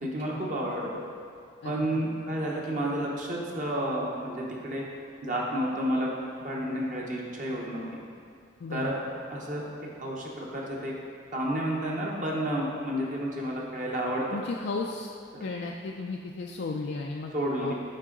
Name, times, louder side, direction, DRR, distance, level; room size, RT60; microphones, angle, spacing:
voice 1, 0.0-0.9 1.6-4.8 5.2-6.1 6.4-7.8 8.7-9.0 9.3-9.6 10.0-10.9 11.3-14.2 17.3-17.7, right 1 dB, 40° right, -3 dB, 0.9 m, -30 dB
voice 2, 1.6-2.0 8.6-8.9 14.3-15.1 15.4-17.3 17.6-17.7, left 3 dB, 60° left, 0 dB, 0.4 m, -34 dB
11.0 x 3.7 x 3.8 m, 2.3 s
head